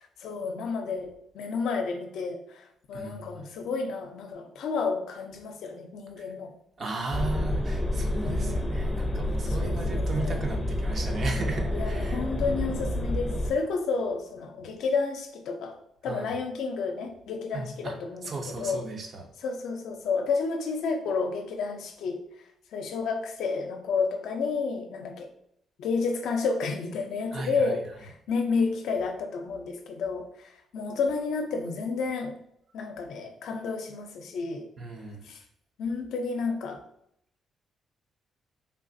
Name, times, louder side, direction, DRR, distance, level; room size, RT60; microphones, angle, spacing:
voice 1, 0.0-6.5 8.2-8.8 9.5-10.4 11.7-15.8 16.0-18.8 19.4-22.2 22.7-25.3 25.8-32.4 32.7-34.7 35.2-35.4 35.8-36.8, left 4 dB, 80° left, 4 dB, 0.5 m, -31 dB
voice 2, 2.9-3.4 6.2-6.3 6.8-12.2 16.0-16.3 17.5-17.9 18.2-19.3 27.3-27.8 34.8-35.3, right 3 dB, 50° right, 3 dB, 0.6 m, -36 dB
sound 1, 7.1-13.5, left 1 dB, 15° left, 0.5 m, -29 dB
3.3 x 2.4 x 2.6 m, 0.72 s
cardioid pair, 90°, 0 cm